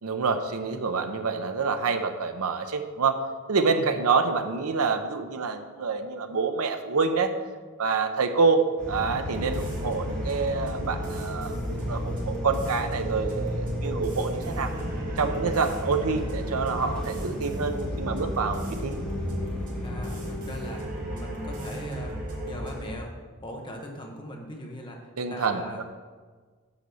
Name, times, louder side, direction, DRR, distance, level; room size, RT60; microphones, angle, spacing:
voice 1, 0.0-3.2 3.5-7.3 7.8-14.7 15.2-19.0 25.2-25.8, right 4 dB, 75° right, 8 dB, 0.6 m, -27 dB
voice 2, 3.6-3.9 19.8-20.8 21.1-22.2 22.4-23.1 23.4-25.8, left 1 dB, 20° left, 1 dB, 1.0 m, -40 dB
sound 1, 8.8-20.4, left 1 dB, 5° left, 1.9 m, -35 dB
sound 2, 9.3-22.9, equal, 35° right, 1.9 m, -34 dB
8.1 x 4.0 x 6.9 m, 1.5 s
head